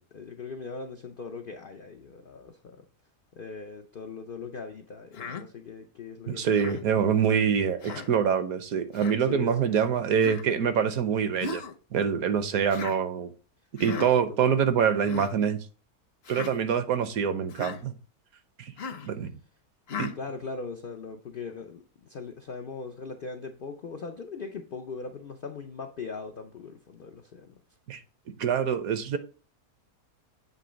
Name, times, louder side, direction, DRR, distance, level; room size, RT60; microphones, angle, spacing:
voice 1, 0.1-2.8 3.3-7.6 9.2-9.9 13.9-14.7 20.2-27.6, left 4 dB, 85° left, 0.4 m, -40 dB
Human voice, 5.1-5.4 6.5-6.8 7.8-8.1 8.9-9.2 10.2-10.5 11.4-11.7 12.7-13.0 13.8-14.1 14.9-15.3 16.2-16.5 17.5-17.8 18.8-19.1 19.9-20.2, left 5 dB, 55° left, 0.7 m, -37 dB
voice 2, 6.3-11.6 11.9-13.3 13.8-15.6 16.3-17.9 18.6-18.7 19.0-19.3 20.0-20.1 27.9-28.0 28.4-29.2, right 7 dB, 70° right, 1.1 m, -25 dB
7.8 x 3.1 x 5.0 m
omnidirectional pair, 1.7 m